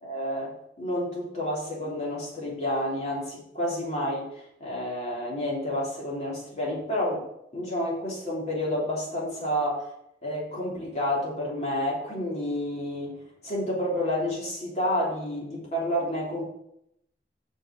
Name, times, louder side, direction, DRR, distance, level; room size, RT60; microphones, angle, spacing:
voice 1, 0.0-7.2 7.5-9.9 10.2-16.4, left 1 dB, 40° left, -5 dB, 3.0 m, -30 dB
6.5 x 6.3 x 6.1 m, 0.78 s
head